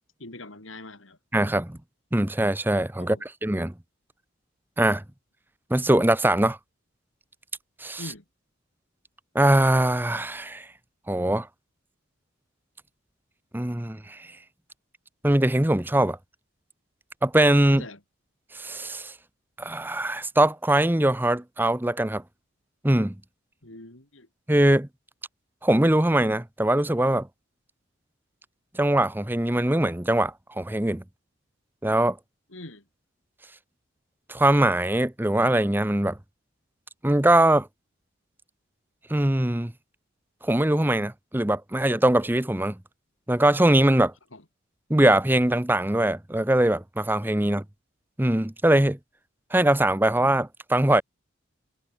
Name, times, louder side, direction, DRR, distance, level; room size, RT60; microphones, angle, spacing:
voice 1, 0.2-1.2 3.0-3.2 8.0-8.2 17.7-18.0 23.6-24.3 32.5-32.8 44.3-44.4, left 2 dB, 80° left, 4.5 m, -42 dB
voice 2, 1.3-1.8 2.1-3.2 3.4-3.7 4.8-5.0 5.7-6.6 7.8-8.0 9.3-10.7 11.1-11.5 13.5-14.2 15.2-16.2 17.2-17.8 18.5-19.1 19.6-22.2 22.8-23.1 24.5-24.9 25.6-27.3 28.8-31.0 31.8-32.2 34.3-36.2 37.0-37.7 39.1-39.7 40.4-42.8 43.3-44.1 44.9-47.6 48.2-49.0 49.5-51.0, right 1 dB, 10° right, 0.8 m, -22 dB
head